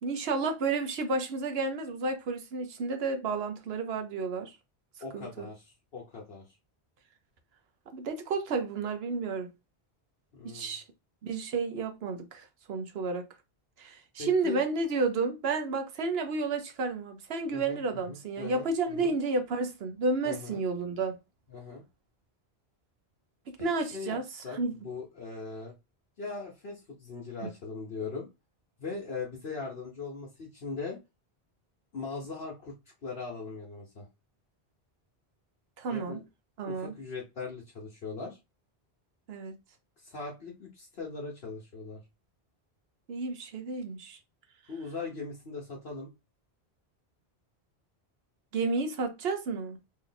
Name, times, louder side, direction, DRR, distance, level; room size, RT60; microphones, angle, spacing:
voice 1, 0.0-4.5 5.1-5.5 7.9-9.5 10.4-10.8 11.2-13.3 13.8-21.2 23.6-24.2 24.5-24.7 27.4-27.5 35.8-36.2 36.6-36.9 39.3-39.6 43.1-44.2 48.5-49.8, right 3 dB, 70° right, 1.0 m, -31 dB
voice 2, 5.0-6.6 10.3-10.7 14.2-14.6 17.5-19.1 20.2-20.6 21.5-21.8 23.6-24.2 24.4-25.7 26.2-28.3 28.8-31.0 31.9-32.7 33.0-34.1 35.9-36.2 36.7-38.4 40.0-42.0 44.7-46.1, left 4 dB, 65° left, 1.2 m, -40 dB
3.2 x 2.7 x 3.9 m
omnidirectional pair, 1.1 m